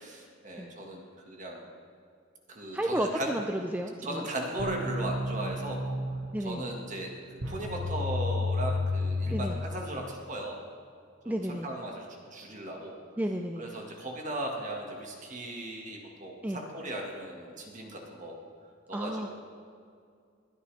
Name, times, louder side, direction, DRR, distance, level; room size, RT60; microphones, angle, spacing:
voice 1, 0.0-1.6 2.5-3.3 4.0-6.0 6.4-10.6 11.2-12.1 12.3-13.0 13.6-18.4 18.9-19.3, right 1 dB, 40° right, 0 dB, 1.7 m, -37 dB
voice 2, 2.7-3.4 3.7-4.2 6.3-6.6 9.3-9.5 11.3-11.7 13.2-13.7 16.4-16.6 18.9-19.3, right 1 dB, 10° right, 4 dB, 0.4 m, -32 dB
sound 1, 4.6-10.2, left 2 dB, 80° right, 1.4 m, -32 dB
21.5 x 9.6 x 3.4 m, 2.3 s
head